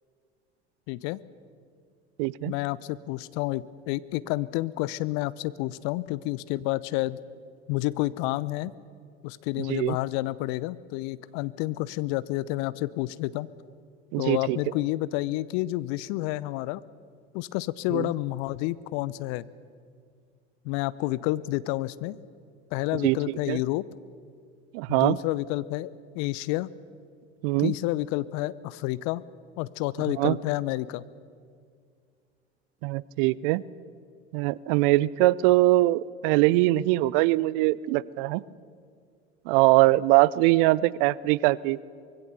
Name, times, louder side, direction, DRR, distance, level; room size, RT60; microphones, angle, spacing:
voice 1, 0.9-1.2 2.4-7.2 7.7-8.7 9.2-13.5 14.2-16.8 17.3-19.4 20.6-22.2 22.7-23.9 24.9-26.7 27.6-29.2 29.6-31.0, left 18 dB, 55° left, 18 dB, 0.8 m, -29 dB
voice 2, 2.2-2.5 9.7-10.0 14.1-14.6 17.9-18.1 23.0-23.2 23.5-23.6 24.7-25.2 27.4-27.7 30.2-30.4 32.8-33.6 34.3-38.4 39.5-41.8, right 18 dB, 55° right, 22 dB, 0.6 m, -22 dB
24.5 x 21.5 x 6.9 m, 2.2 s
figure-of-eight pair, 70°, 33 cm